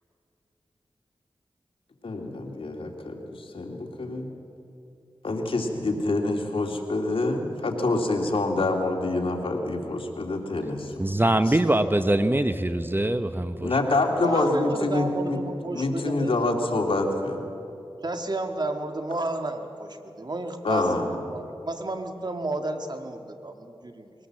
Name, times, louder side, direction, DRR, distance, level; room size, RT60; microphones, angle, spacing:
voice 1, 2.0-4.3 5.2-10.9 11.5-11.6 13.6-17.5 20.6-21.1, left 2 dB, 70° left, 2 dB, 2.6 m, -26 dB
voice 2, 11.0-13.7, right 1 dB, 20° right, 10 dB, 0.9 m, -23 dB
voice 3, 14.2-16.3 18.0-24.1, right 2 dB, 45° right, 6 dB, 1.8 m, -32 dB
22.0 x 18.0 x 7.5 m, 2.7 s
cardioid pair, 45°, 10 cm